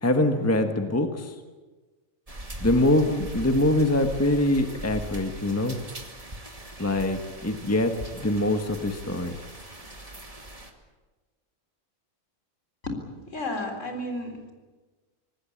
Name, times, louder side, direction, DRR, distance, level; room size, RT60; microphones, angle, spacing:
voice 1, 0.0-1.3 2.6-5.8 6.8-9.4, left 1 dB, 10° left, 6 dB, 1.5 m, -24 dB
sound 1, 2.3-10.7, right 1 dB, 25° right, 2.5 m, -40 dB
voice 2, 13.3-14.5, left 1 dB, 60° left, 4 dB, 4.3 m, -32 dB
25.5 x 19.5 x 8.7 m, 1.3 s
omnidirectional pair, 1.4 m